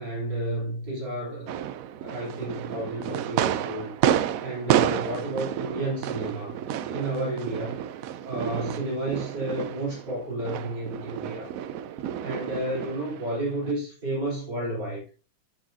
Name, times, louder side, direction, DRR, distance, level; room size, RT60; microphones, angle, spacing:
voice 1, 0.0-1.5 2.0-3.9 4.4-6.6 6.8-7.8 8.2-11.5 12.2-15.0, right 1 dB, 60° right, 4.1 m, -31 dB
sound 1, 1.5-13.7, right 10 dB, 85° right, 0.7 m, -30 dB
13.0 x 6.4 x 2.7 m
omnidirectional pair, 2.1 m